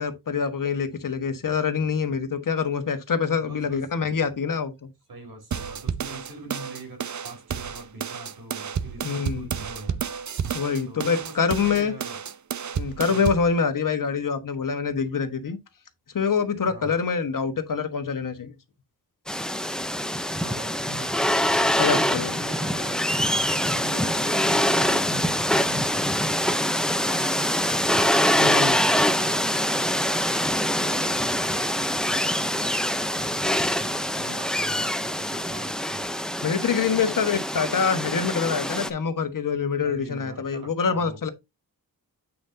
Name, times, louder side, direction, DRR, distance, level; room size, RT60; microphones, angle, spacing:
voice 1, 0.0-4.9 9.0-9.5 10.5-11.9 12.8-15.6 16.1-18.5 21.8-22.3 28.4-28.8 36.4-41.3, left 6 dB, 55° left, 1.4 m, -25 dB
voice 2, 3.4-3.8 5.1-10.0 10.9-12.2 13.1-13.3 16.6-17.0 20.4-21.1 21.6-27.9 28.6-29.5 30.5-36.0 39.8-41.2, right 2 dB, 70° right, 4.2 m, -42 dB
sound 1, 5.5-13.5, right 7 dB, 50° right, 0.7 m, -31 dB
sound 2, 19.3-38.9, equal, ahead, 0.6 m, -24 dB
8.5 x 5.7 x 2.7 m
wide cardioid pair, 115°, 38 cm